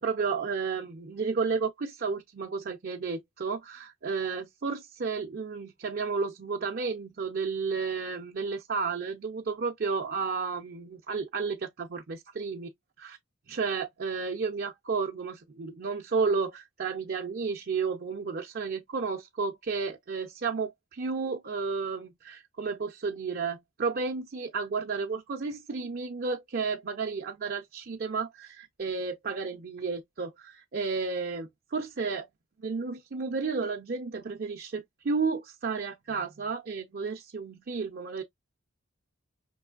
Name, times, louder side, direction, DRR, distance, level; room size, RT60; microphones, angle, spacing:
voice 1, 0.0-12.7 13.0-13.2 13.5-32.3 32.6-38.2, right 5 dB, 50° right, 0.6 m, -32 dB
5.3 x 3.1 x 2.3 m
head